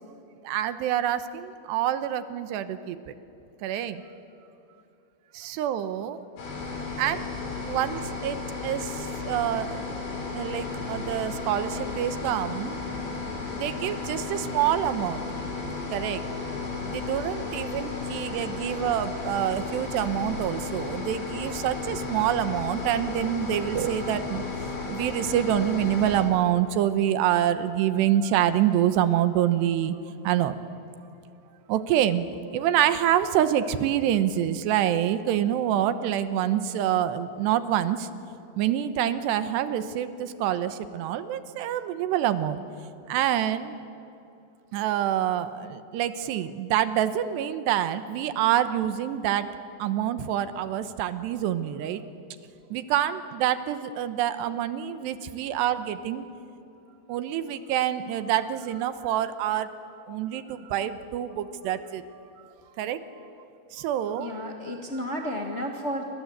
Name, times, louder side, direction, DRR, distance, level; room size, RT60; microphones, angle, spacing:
voice 1, 0.4-3.0 3.6-4.0 5.3-6.2 7.0-7.3 7.7-8.4 8.6-12.8 13.6-15.2 15.9-16.2 16.9-30.0 30.2-30.6 31.7-32.3 32.5-38.1 38.6-42.6 43.1-43.8 44.7-49.5 49.8-52.0 52.7-56.3 57.1-59.7 60.1-62.0 62.8-63.0 63.7-64.5 65.2-65.7, right 11 dB, 85° right, 11 dB, 3.1 m, -26 dB
sound 1, 6.4-26.2, left 4 dB, 80° left, 6.9 m, -34 dB
voice 2, 64.2-66.0, equal, 50° left, 1 dB, 0.8 m, -32 dB
28.5 x 25.5 x 8.1 m, 2.8 s
omnidirectional pair, 4.9 m